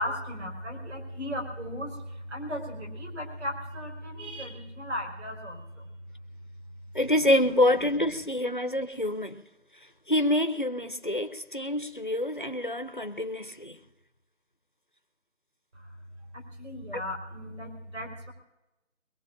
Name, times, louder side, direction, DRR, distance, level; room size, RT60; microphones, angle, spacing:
voice 1, 0.0-5.9 7.2-7.3 7.6-7.7 8.0-8.2 15.7-18.3, left 1 dB, 55° right, 4.9 m, -37 dB
voice 2, 6.9-9.4 10.1-13.8, left 1 dB, 40° left, 0.6 m, -26 dB
22.5 x 22.5 x 2.5 m
figure-of-eight pair, 180°, 41 cm